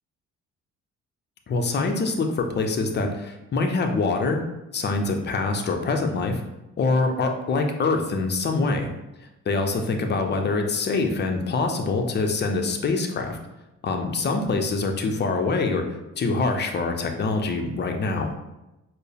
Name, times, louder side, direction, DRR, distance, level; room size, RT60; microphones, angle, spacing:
voice 1, 1.5-4.4 4.7-6.4 6.8-8.9 9.5-13.4 13.8-15.8 16.2-18.3, left 3 dB, 35° left, 4 dB, 0.6 m, -24 dB
4.3 x 2.0 x 3.4 m, 0.96 s
cardioid pair, 90°, 30 cm